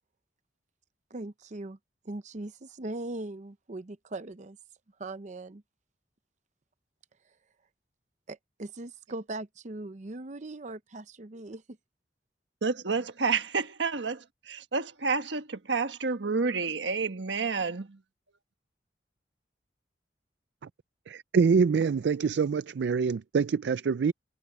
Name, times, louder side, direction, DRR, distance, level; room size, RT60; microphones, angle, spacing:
voice 1, 1.1-1.8 2.0-4.6 5.0-5.6 8.3-11.8, right 2 dB, 45° right, 0.7 m, -40 dB
voice 2, 12.6-18.0, right 4 dB, 90° right, 1.3 m, -30 dB
voice 3, 21.1-24.1, right 5 dB, 70° right, 0.4 m, -25 dB
head